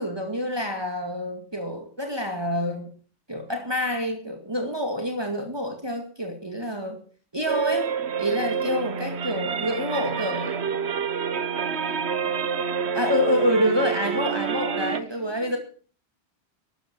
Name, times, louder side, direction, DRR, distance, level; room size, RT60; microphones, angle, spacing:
voice 1, 0.0-2.9 3.3-7.0 7.3-7.9 8.2-10.6 12.9-15.6, equal, 25° right, 4 dB, 2.4 m, -27 dB
sound 1, 7.5-15.0, right 6 dB, 85° right, 1.3 m, -28 dB
voice 2, 9.3-10.8 11.6-13.0 15.0-15.6, equal, 35° left, 0 dB, 8.0 m, -50 dB
14.5 x 11.5 x 7.5 m, 0.42 s
omnidirectional pair, 1.1 m